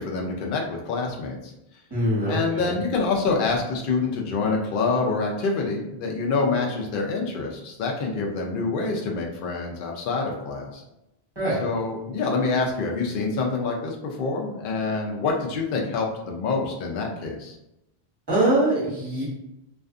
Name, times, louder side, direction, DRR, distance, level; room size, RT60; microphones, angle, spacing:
voice 1, 0.0-1.5 2.3-10.8 11.6-17.5, left 4 dB, 60° left, 1 dB, 0.7 m, -26 dB
voice 2, 1.9-2.7 11.3-11.6 18.3-19.2, right 1 dB, 25° right, -9 dB, 1.0 m, -23 dB
2.4 x 2.4 x 2.4 m, 0.88 s
omnidirectional pair, 1.1 m